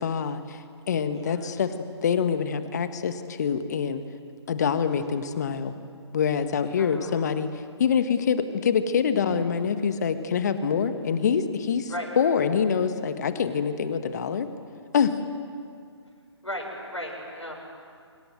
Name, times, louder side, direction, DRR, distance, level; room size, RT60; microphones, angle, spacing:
voice 1, 0.0-1.7 2.0-4.0 4.5-5.7 6.1-7.5 7.8-11.9 12.2-14.5 14.9-15.2, left 7 dB, 40° left, 10 dB, 1.6 m, -25 dB
voice 2, 1.1-1.5 4.6-4.9 6.8-7.4 11.9-12.1 16.4-17.5, equal, 85° left, -2 dB, 7.1 m, -37 dB
28.5 x 26.0 x 7.8 m, 2.2 s
figure-of-eight pair, 140°, 15 cm